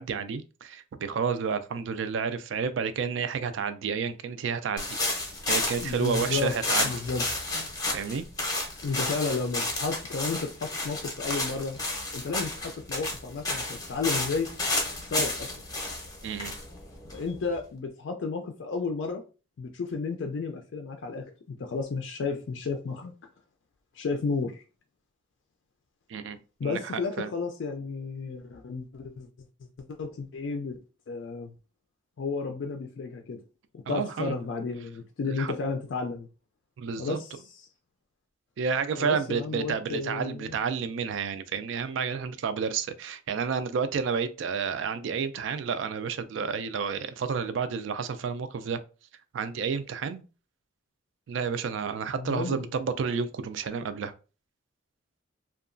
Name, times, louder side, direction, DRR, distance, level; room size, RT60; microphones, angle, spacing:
voice 1, 0.0-4.9 5.5-6.9 7.9-8.3 16.2-16.5 26.1-26.9 27.2-27.3 33.9-34.4 35.4-35.5 36.8-37.2 38.6-48.8 49.3-50.2 51.3-54.1, right 6 dB, 70° right, 0.3 m, -30 dB
sound 1, 4.8-17.6, left 2 dB, 20° left, 0.6 m, -31 dB
voice 2, 5.8-6.6 6.8-7.7 8.8-11.8 12.1-14.5 15.1-15.5 17.1-19.2 19.6-23.1 23.9-24.6 26.6-29.3 30.0-30.8 31.1-31.5 32.2-33.4 33.7-36.3 37.0-37.7 39.0-40.6 52.1-52.7, left 4 dB, 65° left, 0.4 m, -32 dB
2.8 x 2.3 x 2.5 m
head